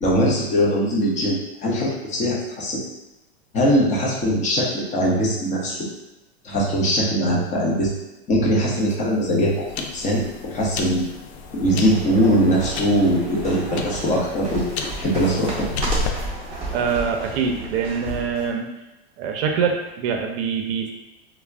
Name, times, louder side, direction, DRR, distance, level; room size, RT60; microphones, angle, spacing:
voice 1, 0.0-2.8 3.5-5.8 6.4-7.9 8.3-9.7 9.9-11.1 11.5-15.7, equal, 20° left, -3 dB, 0.7 m, -21 dB
sound 1, 8.7-16.1, left 3 dB, 80° left, 0.5 m, -33 dB
sound 2, 11.3-18.5, right 2 dB, 15° right, 0.7 m, -33 dB
voice 2, 16.7-18.7 19.2-20.9, right 6 dB, 60° right, 3 dB, 0.5 m, -24 dB
2.3 x 2.1 x 3.4 m, 1.0 s
supercardioid pair, 130°, 33 cm